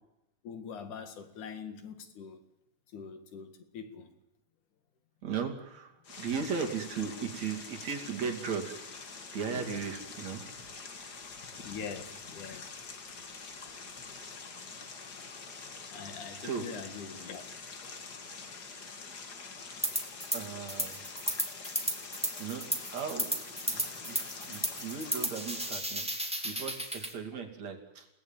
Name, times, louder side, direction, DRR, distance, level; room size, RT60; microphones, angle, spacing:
voice 1, 0.4-2.4 2.9-4.1 11.7-12.7 15.9-17.4 20.8-21.1 25.7-25.8, left 6 dB, 85° left, 8 dB, 3.5 m, -43 dB
voice 2, 5.2-8.8 9.3-10.4 16.4-16.7 17.2-17.3 20.3-21.0 22.4-23.3 23.7-24.2 24.5-28.1, right 6 dB, 65° right, 4 dB, 3.9 m, -37 dB
sound 1, 6.0-25.7, left 4 dB, 35° left, 2.1 m, -45 dB
sound 2, 19.8-20.4 20.7-27.1, right 1 dB, ahead, 2.2 m, -34 dB
28.5 x 18.0 x 9.0 m, 0.93 s
omnidirectional pair, 3.4 m